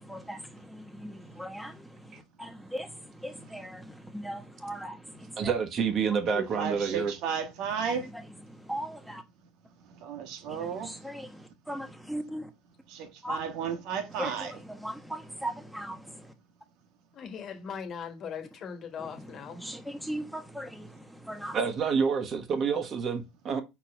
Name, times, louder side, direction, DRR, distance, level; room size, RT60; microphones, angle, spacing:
voice 1, 0.0-5.5 7.9-8.2 8.5-9.2 10.5-12.5 13.2-13.4 14.1-16.3 19.0-19.1 19.6-21.6, equal, ahead, 1.1 m, -39 dB
voice 2, 5.4-7.1 21.5-23.6, right 6 dB, 45° right, 1.3 m, -28 dB
voice 3, 6.3-8.1 10.0-10.9 12.9-14.5, right 7 dB, 70° right, 1.5 m, -33 dB
voice 4, 17.1-19.8, left 6 dB, 45° left, 1.5 m, -40 dB
4.5 x 4.0 x 5.7 m
supercardioid pair, 95°, 0 cm